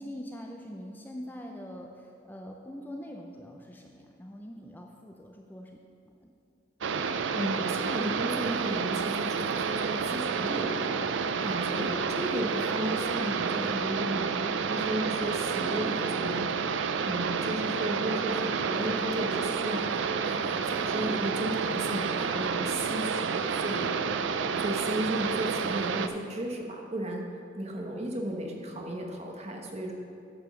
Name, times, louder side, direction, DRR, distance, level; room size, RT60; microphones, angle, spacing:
voice 1, 0.0-6.3, equal, 10° left, 1 dB, 0.4 m, -43 dB
sound 1, 6.8-26.1, right 5 dB, 70° right, 0.4 m, -30 dB
voice 2, 7.3-16.5 17.0-23.9 24.3-27.3 27.5-29.9, right 1 dB, 35° right, 1 dB, 1.1 m, -34 dB
Piano, 12.8-16.6, equal, 55° left, 2.6 m, -50 dB
9.7 x 5.2 x 6.9 m, 2.5 s
head